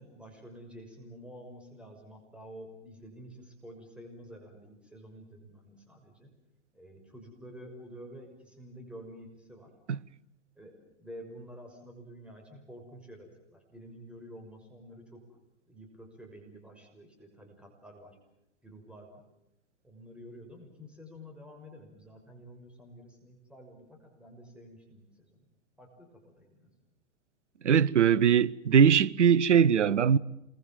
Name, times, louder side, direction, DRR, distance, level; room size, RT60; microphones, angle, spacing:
voice 1, 0.0-6.3 6.7-9.7 10.6-15.2 15.7-18.2 18.6-19.2 19.8-25.5 25.8-26.7, equal, 5° right, 6.1 m, -49 dB
voice 2, 27.6-30.2, right 7 dB, 75° right, 0.9 m, -21 dB
28.0 x 23.5 x 7.5 m
figure-of-eight pair, 105°, 36 cm